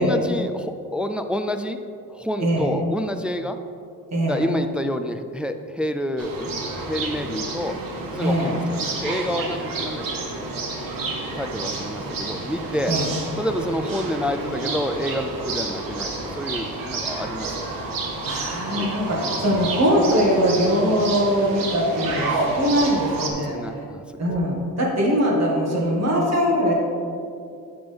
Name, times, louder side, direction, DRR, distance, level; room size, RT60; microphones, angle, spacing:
voice 1, 0.0-1.8 2.1-3.6 4.3-6.6 6.9-7.8 8.1-10.4 11.3-13.0 13.4-17.5 18.8-19.1 23.5-24.0, equal, 5° right, 7 dB, 0.3 m, -28 dB
voice 2, 2.4-2.8 4.1-4.4 8.2-8.6 12.9-13.1 18.2-23.9 24.2-26.7, equal, 45° right, -4 dB, 1.9 m, -22 dB
sound 1, 6.2-23.3, right 3 dB, 70° right, 1.3 m, -29 dB
8.7 x 6.1 x 3.5 m, 2.4 s
cardioid pair, 70°, 35 cm